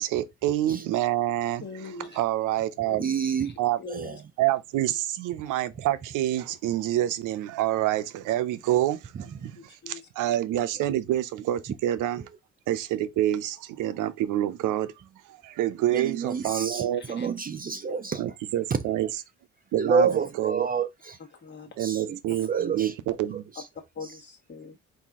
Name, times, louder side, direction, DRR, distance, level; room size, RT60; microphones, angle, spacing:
voice 1, 0.0-1.6 2.1-3.0 3.6-3.8 4.4-12.2 12.7-17.0 18.2-19.1 19.7-20.1 20.4-20.7 21.8-23.4, right 13 dB, 90° right, 0.6 m, -27 dB
voice 2, 1.6-2.2 2.8-3.1 3.8-4.2 9.5-10.0 16.7-17.3 21.4-21.8 23.9-24.8, left 4 dB, 35° left, 1.3 m, -42 dB
voice 3, 3.0-3.6 3.9-4.2 5.4-5.5 15.9-18.2 19.8-21.2 21.8-22.2 22.5-22.9 23.3-23.7 24.0-24.2, right 6 dB, 30° right, 0.4 m, -28 dB
4.1 x 2.7 x 3.5 m
cardioid pair, 90°, 30 cm